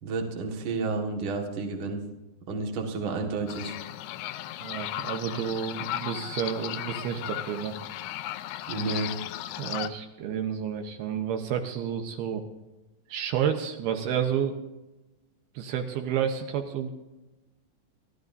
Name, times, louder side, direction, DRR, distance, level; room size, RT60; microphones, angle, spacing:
voice 1, 0.0-2.0 2.5-3.7 8.7-9.1, right 3 dB, 50° right, 2 dB, 1.6 m, -31 dB
sound 1, 3.5-9.9, left 13 dB, 80° left, 2.4 m, -36 dB
voice 2, 4.6-7.8 9.6-12.4 13.1-14.6 15.6-16.9, right 8 dB, 75° right, 5 dB, 2.7 m, -30 dB
27.5 x 13.5 x 2.7 m, 1.0 s
omnidirectional pair, 5.0 m